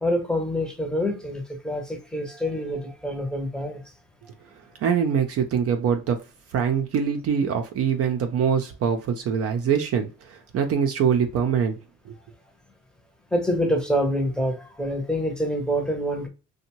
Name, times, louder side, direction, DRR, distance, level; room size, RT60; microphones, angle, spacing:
voice 1, 0.0-3.8 13.3-16.3, equal, ahead, 0.8 m, -26 dB
voice 2, 4.8-6.2 6.5-11.7 12.1-12.2, right 7 dB, 50° right, 0.6 m, -23 dB
2.6 x 2.2 x 2.9 m
supercardioid pair, 90°, 30 cm